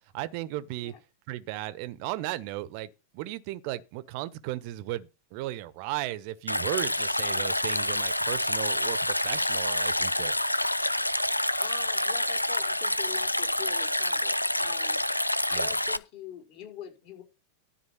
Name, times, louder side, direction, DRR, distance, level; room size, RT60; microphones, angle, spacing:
voice 1, 0.1-0.9 1.3-10.5 15.5-15.7, right 16 dB, 45° right, 1.1 m, -35 dB
Stream, 6.5-16.0, left 1 dB, 85° left, 0.6 m, -27 dB
voice 2, 11.6-15.0 15.5-17.2, left 9 dB, 45° left, 5.4 m, -44 dB
13.0 x 4.8 x 6.7 m
figure-of-eight pair, 90°, 0 cm